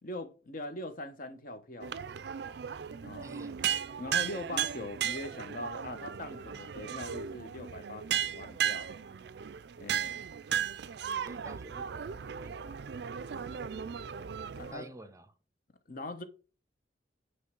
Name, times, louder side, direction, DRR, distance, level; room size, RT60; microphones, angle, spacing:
voice 1, 0.0-2.1 3.0-3.3 4.0-9.0 9.8-10.3 14.6-14.9 15.9-16.2, left 2 dB, 50° left, 1.0 m, -42 dB
sound 1, 1.8-14.7, right 8 dB, 65° right, 0.4 m, -36 dB
voice 2, 3.2-3.6 4.8-4.9 11.2-13.2 14.7-15.3, right 1 dB, 20° right, 0.6 m, -51 dB
9.3 x 3.2 x 6.1 m
head